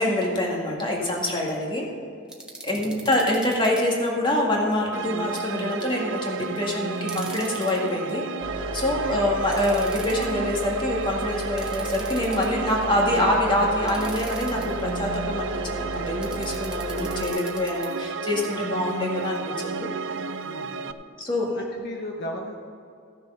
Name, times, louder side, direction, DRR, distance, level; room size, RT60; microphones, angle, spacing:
voice 1, 0.0-1.9 2.6-8.2 8.7-19.9 21.2-21.6, left 1 dB, 25° left, -2 dB, 2.1 m, -25 dB
sound 1, 2.3-3.8 7.0-7.8 9.5-10.3 11.6-12.7 13.9-14.7 16.2-17.9, right 2 dB, 5° right, 1.4 m, -41 dB
voice 2, 2.7-3.1 8.8-9.3 20.4-20.9 21.5-22.5, equal, 55° left, 0 dB, 1.1 m, -37 dB
sound 2, 4.9-20.9, right 5 dB, 65° right, 0.5 m, -32 dB
sound 3, 8.4-17.3, equal, 25° right, 0.8 m, -34 dB
14.5 x 6.8 x 5.7 m, 2.5 s
head